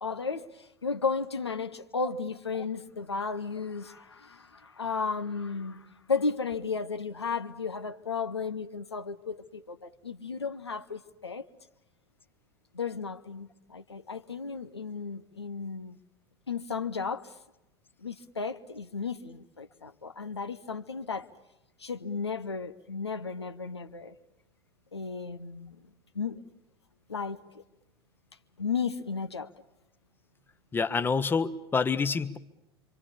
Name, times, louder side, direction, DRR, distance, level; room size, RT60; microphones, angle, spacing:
voice 1, 0.0-11.5 12.7-16.0 16.5-17.3 18.0-21.3 21.8-24.1 24.9-25.8 26.1-26.4 27.1-27.4 28.6-29.5, left 5 dB, 80° left, 1.0 m, -34 dB
voice 2, 30.7-32.4, left 5 dB, 15° left, 1.0 m, -27 dB
26.5 x 25.0 x 7.0 m
figure-of-eight pair, 80°, 14 cm